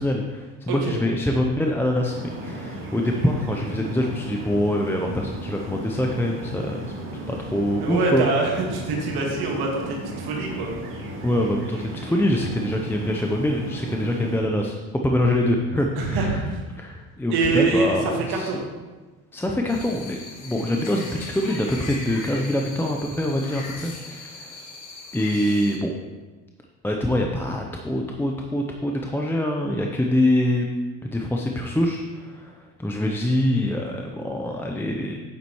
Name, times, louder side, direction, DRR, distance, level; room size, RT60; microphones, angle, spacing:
voice 1, 0.0-6.9 7.3-8.3 11.2-14.8 15.0-16.4 16.8-18.5 19.3-24.5 25.1-25.9 26.8-30.7 31.0-32.5 32.8-35.2, left 1 dB, 5° left, 1 dB, 0.6 m, -24 dB
sound 1, 2.1-14.4, right 1 dB, 30° right, 2.0 m, -35 dB
voice 2, 7.8-10.7 16.0-16.6 17.3-18.6, right 3 dB, 70° right, 0 dB, 1.9 m, -24 dB
sound 2, 19.7-25.8, left 3 dB, 50° left, 1.4 m, -39 dB
8.5 x 7.3 x 3.1 m, 1.3 s
supercardioid pair, 85°, 40 cm